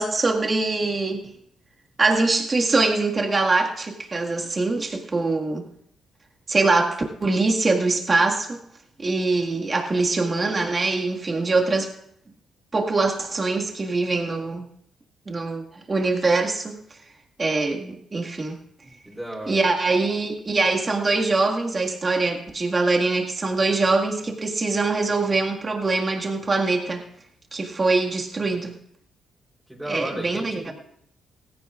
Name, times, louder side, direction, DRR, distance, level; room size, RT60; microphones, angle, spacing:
voice 1, 0.0-1.3 2.0-5.7 6.5-8.6 9.0-11.9 12.7-14.6 15.3-16.8 17.4-18.6 19.5-27.0 27.5-28.7 29.9-30.7, right 3 dB, 30° right, 1 dB, 1.9 m, -23 dB
voice 2, 19.1-19.7 29.7-30.7, right 1 dB, 10° right, -2 dB, 3.9 m, -34 dB
18.0 x 15.5 x 2.5 m, 0.70 s
cardioid pair, 90°, 0 cm